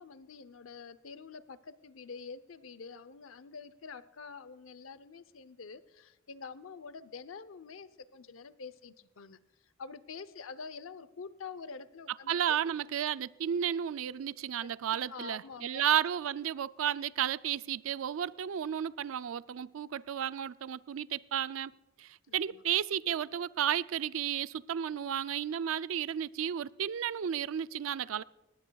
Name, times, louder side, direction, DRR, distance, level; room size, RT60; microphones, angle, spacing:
voice 1, 0.0-9.4 9.8-12.6 14.6-14.7 15.1-15.8 22.3-22.6, left 5 dB, 85° left, 0.7 m, -47 dB
voice 2, 12.3-21.7 22.0-28.2, right 9 dB, 85° right, 0.4 m, -33 dB
19.5 x 17.5 x 2.3 m
head